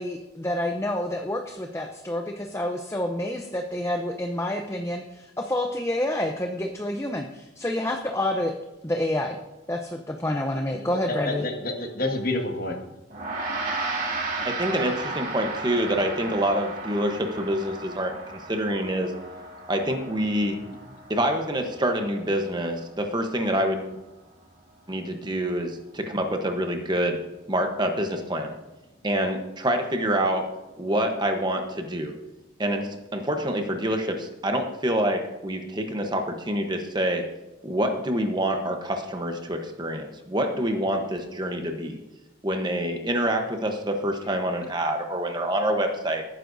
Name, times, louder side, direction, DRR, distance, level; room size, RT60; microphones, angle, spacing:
voice 1, 0.0-8.5 8.8-9.4 9.7-11.4, left 1 dB, 15° left, 4 dB, 0.6 m, -28 dB
voice 2, 10.7-12.8, left 2 dB, 45° left, 2 dB, 1.6 m, -29 dB
Gong, 13.1-22.6, right 3 dB, 40° right, 2.4 m, -34 dB
voice 3, 14.4-19.1 19.7-20.6 21.1-23.9 24.9-27.2 27.5-28.5 29.0-30.5 30.8-32.1 32.6-37.3 37.6-42.0 42.4-46.2, right 1 dB, 20° right, 4 dB, 1.0 m, -26 dB
17.5 x 9.5 x 2.7 m, 1.1 s
head